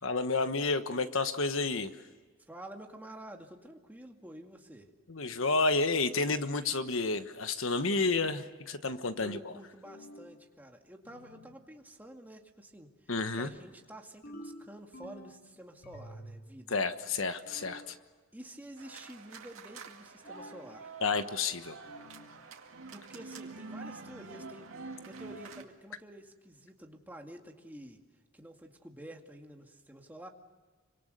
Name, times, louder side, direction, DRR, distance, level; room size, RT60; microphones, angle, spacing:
voice 1, 0.0-1.9 5.1-9.4 13.1-13.5 16.7-18.0 21.0-21.8, left 3 dB, 70° left, 10 dB, 1.3 m, -30 dB
voice 2, 2.5-4.9 9.2-16.8 18.3-20.9 22.9-28.0 28.3-30.3, right 1 dB, 10° right, 2 dB, 2.1 m, -49 dB
sound 1, 9.8-10.4 11.0-11.6 14.2-15.4 15.8-16.5 17.4-17.9 20.2-20.8 21.8-22.4, equal, 50° left, 4.0 m, -49 dB
sound 2, 18.8-25.6, right 4 dB, 75° right, 2.2 m, -47 dB
27.0 x 25.0 x 6.8 m, 1.4 s
head